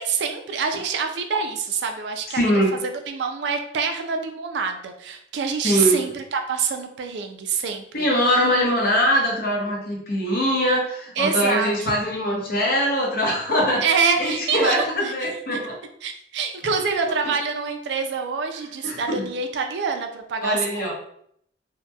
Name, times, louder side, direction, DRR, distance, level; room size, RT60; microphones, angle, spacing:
voice 1, 0.0-2.4 2.8-8.1 11.2-11.9 13.8-15.6 16.0-20.9, right 5 dB, 70° right, 5 dB, 0.3 m, -26 dB
voice 2, 2.3-2.8 5.6-6.0 7.9-13.8 14.2-15.8 18.8-19.3 20.4-20.9, equal, 55° left, -1 dB, 0.7 m, -22 dB
2.7 x 2.1 x 2.2 m, 0.66 s
head